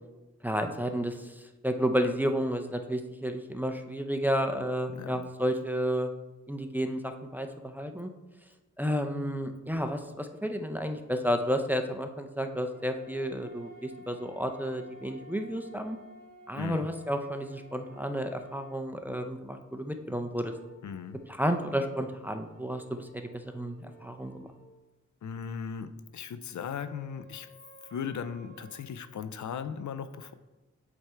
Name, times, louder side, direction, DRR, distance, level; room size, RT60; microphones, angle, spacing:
voice 1, 0.4-1.3 1.6-6.1 6.5-8.1 8.8-16.0 16.5-20.5 21.3-24.5, equal, 5° right, 6 dB, 0.4 m, -31 dB
voice 2, 4.9-5.3 16.6-16.9 20.8-21.2 25.2-27.5 27.9-30.3, left 7 dB, 70° left, 12 dB, 0.4 m, -37 dB
sound 1, 12.7-18.9 20.5-24.7 26.6-28.8, equal, 30° right, 1.5 m, -54 dB
7.8 x 3.5 x 4.3 m, 1.1 s
wide cardioid pair, 95°, 31 cm